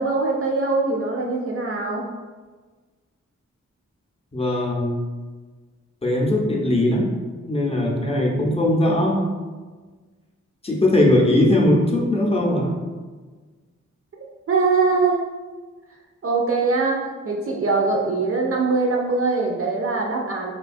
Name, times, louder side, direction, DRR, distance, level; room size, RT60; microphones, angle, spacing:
voice 1, 0.0-2.0 14.5-15.3 16.2-20.5, right 3 dB, 50° right, -1 dB, 0.4 m, -22 dB
voice 2, 4.3-4.9 6.0-7.1 7.5-9.3 10.6-12.8, left 1 dB, 20° left, -1 dB, 0.6 m, -19 dB
2.8 x 2.2 x 2.5 m, 1.4 s
cardioid pair, 45°, 30 cm